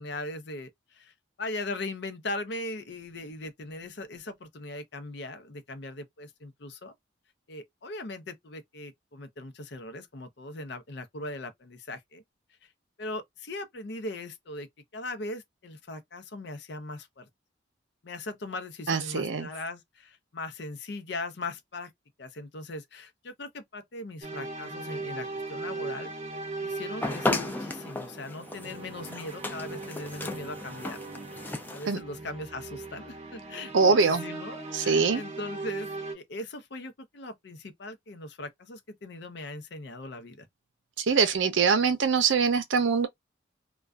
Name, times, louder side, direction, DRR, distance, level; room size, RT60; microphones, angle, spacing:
voice 1, 0.0-6.9 7.5-12.2 12.6-12.7 13.0-14.7 14.9-17.3 18.0-21.9 22.2-26.1 26.6-31.0 31.7-40.5, left 2 dB, 60° left, 0.6 m, -39 dB
voice 2, 18.9-19.5 31.9-32.0 33.7-34.2 34.7-35.2 41.0-43.1, right 5 dB, 80° right, 0.6 m, -23 dB
sound 1, 24.2-36.2, right 3 dB, 35° right, 0.6 m, -39 dB
sound 2, 27.0-32.0, left 2 dB, 10° left, 0.3 m, -34 dB
2.4 x 2.3 x 2.2 m
head